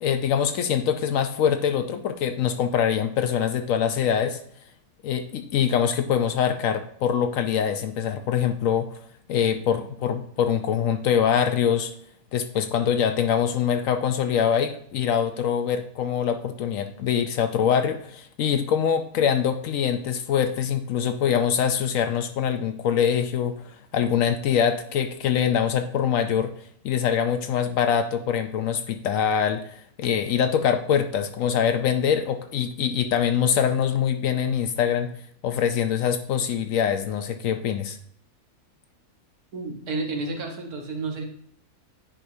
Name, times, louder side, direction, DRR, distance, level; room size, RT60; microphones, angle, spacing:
voice 1, 0.0-4.4 5.0-8.9 9.3-11.9 12.3-23.6 23.9-26.5 26.8-35.1 35.4-38.0, left 8 dB, 70° left, 8 dB, 0.9 m, -24 dB
voice 2, 39.5-41.2, right 3 dB, 75° right, 2 dB, 1.7 m, -31 dB
10.0 x 4.8 x 2.7 m, 0.65 s
omnidirectional pair, 1.6 m